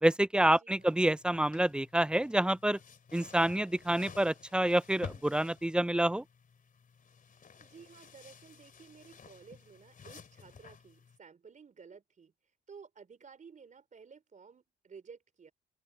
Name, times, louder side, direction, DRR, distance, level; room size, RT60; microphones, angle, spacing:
voice 1, 0.0-2.8 3.1-6.2, right 1 dB, 5° right, 0.4 m, -28 dB
voice 2, 0.6-1.0 7.6-12.3 12.7-15.5, right 6 dB, 40° right, 4.2 m, -54 dB
sound 1, 0.8-11.2, left 6 dB, 45° left, 3.3 m, -52 dB
open air
cardioid pair, 90°, 20 cm